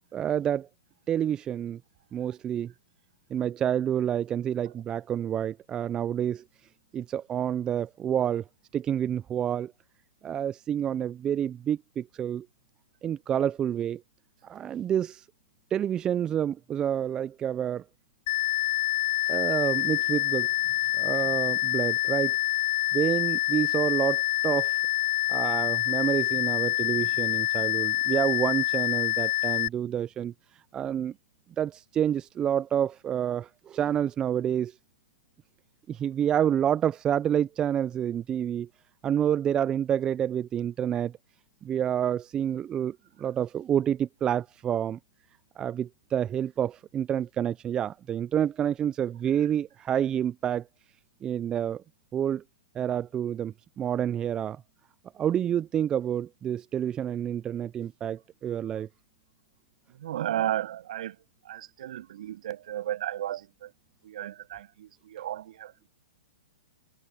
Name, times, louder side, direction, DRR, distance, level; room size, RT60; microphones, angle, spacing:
voice 1, 0.1-0.7 1.1-1.8 2.1-2.7 3.3-6.4 6.9-8.4 8.7-9.7 10.2-12.5 13.0-14.0 14.4-15.2 15.7-17.8 19.3-20.5 21.0-22.4 22.9-24.8 25.3-30.3 30.7-31.1 31.6-34.7 35.9-38.7 39.0-41.1 41.6-45.0 45.6-50.6 51.2-51.8 52.1-52.4 52.8-54.6 55.2-58.9, right 9 dB, 20° right, 0.3 m, -28 dB
sound 1, 18.3-29.7, left 17 dB, 50° left, 0.9 m, -26 dB
voice 2, 59.9-63.7 64.0-65.9, right 12 dB, 60° right, 7.0 m, -34 dB
hypercardioid pair, 140°, 4 cm